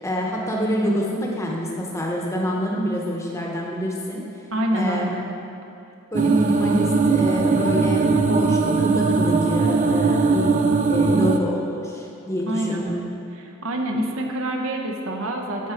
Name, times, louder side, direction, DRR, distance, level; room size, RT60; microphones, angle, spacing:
voice 1, 0.0-4.2 4.7-5.1 6.1-10.6 10.9-13.0, equal, 15° left, -2 dB, 0.9 m, -26 dB
voice 2, 4.5-5.3 12.5-12.8 13.6-15.7, right 1 dB, 70° right, 2 dB, 0.9 m, -26 dB
sound 1, 6.1-11.4, right 4 dB, 35° right, 0.3 m, -20 dB
12.5 x 4.2 x 5.0 m, 2.6 s
head